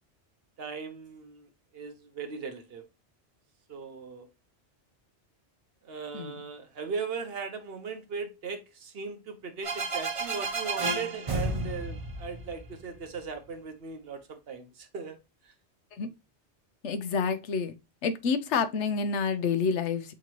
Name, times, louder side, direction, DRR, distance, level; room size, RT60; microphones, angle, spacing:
voice 1, 0.6-2.8 3.7-4.3 5.8-15.2 15.4-15.5, right 5 dB, 60° right, 1.0 m, -38 dB
sound 1, 9.6-13.3, right 3 dB, 35° right, 0.8 m, -32 dB
voice 2, 16.8-17.7 18.0-20.1, left 5 dB, 85° left, 1.0 m, -28 dB
6.1 x 2.9 x 2.9 m
omnidirectional pair, 1.2 m